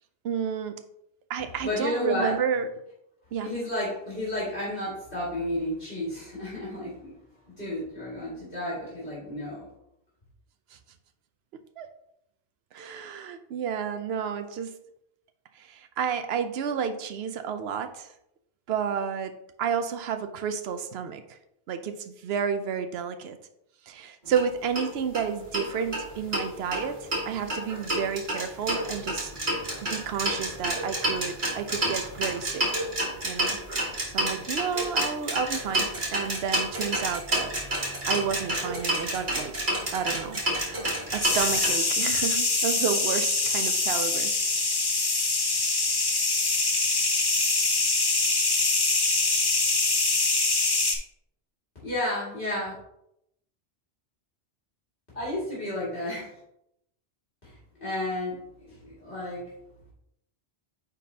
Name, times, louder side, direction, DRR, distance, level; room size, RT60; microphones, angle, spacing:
voice 1, 0.2-0.7 1.3-2.7 3.3-3.5 11.8-11.9 12.7-14.7 15.6-18.1 18.7-19.3 19.6-21.4 21.7-23.4 23.9-29.3 29.8-32.7 33.2-37.5 38.1-39.5 39.9-40.4 41.1-44.3, right 7 dB, 75° right, 9 dB, 0.8 m, -31 dB
voice 2, 1.6-2.3 3.4-7.1 7.6-9.7 51.8-52.7 55.1-56.3 57.4-57.6 57.8-58.4 58.7-59.4, left 1 dB, 55° left, -8 dB, 2.4 m, -31 dB
sound 1, 24.3-24.4 24.7-24.9 25.1-25.2 25.5-26.4 26.7-41.7, right 1 dB, 50° right, 1.7 m, -29 dB
sound 2, 41.2-51.0, left 3 dB, 25° left, 0.6 m, -24 dB
9.1 x 3.8 x 2.8 m, 0.79 s
omnidirectional pair, 1.1 m